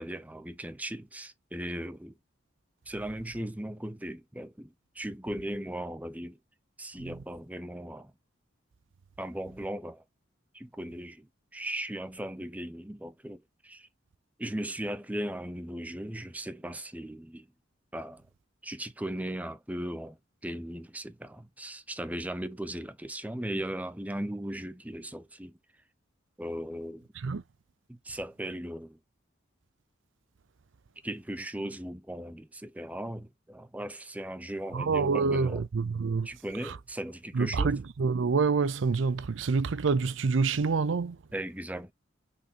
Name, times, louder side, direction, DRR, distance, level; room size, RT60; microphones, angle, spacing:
voice 1, 0.0-2.1 2.9-6.4 6.8-8.1 9.2-10.0 10.5-13.9 14.4-17.5 17.9-18.3 18.6-20.2 20.4-25.6 26.4-27.1 27.9-29.0 31.0-35.6 36.2-37.8 41.3-41.9, right 1 dB, 10° right, 0.7 m, -37 dB
voice 2, 34.7-36.3 37.3-41.2, right 4 dB, 75° right, 0.5 m, -27 dB
6.4 x 5.5 x 2.8 m
head